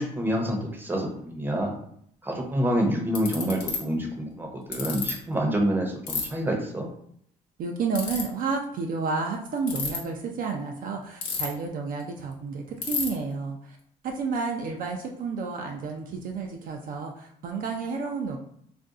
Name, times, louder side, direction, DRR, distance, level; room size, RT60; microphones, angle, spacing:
voice 1, 0.0-1.7 2.2-6.9, equal, 10° right, 1 dB, 0.7 m, -27 dB
Ratchet pawl, 2.4-2.5 3.1-3.8 4.7-5.1 6.1-6.2 7.9-8.2 9.6-10.0 11.2-11.7 12.0-12.1 12.3-12.4 12.8-13.1, left 6 dB, 80° left, 0.9 m, -29 dB
voice 2, 7.6-13.8 14.0-18.4, right 4 dB, 55° right, 2 dB, 0.5 m, -31 dB
2.5 x 2.2 x 3.6 m, 0.67 s
cardioid pair, 110°, 17 cm